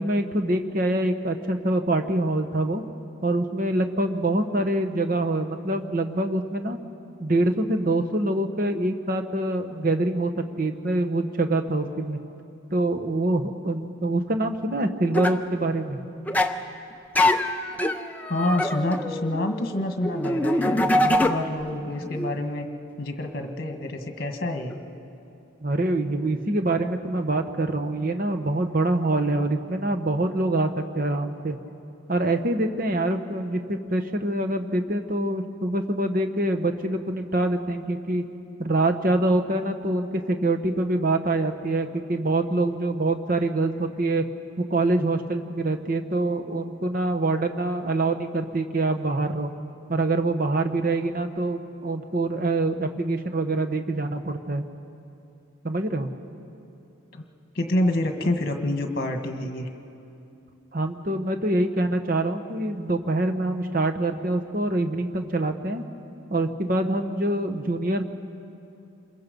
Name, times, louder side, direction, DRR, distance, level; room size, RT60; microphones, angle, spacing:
voice 1, 0.0-2.8 3.2-6.8 7.2-10.3 10.6-12.2 12.7-16.0 25.6-31.6 32.1-38.3 38.6-44.2 44.6-49.5 49.9-54.6 55.6-56.1 60.7-65.8 66.3-68.1, right 2 dB, 45° right, 6 dB, 1.1 m, -25 dB
sound 1, 15.1-15.4 16.3-16.6 17.2-21.7 22.0-22.3 24.7-24.8, left 1 dB, 10° left, 0.5 m, -24 dB
voice 2, 18.3-22.7 23.0-24.8 57.1-57.2 57.6-59.7, left 1 dB, 45° left, 5 dB, 1.6 m, -27 dB
27.0 x 22.0 x 5.3 m, 2.7 s
head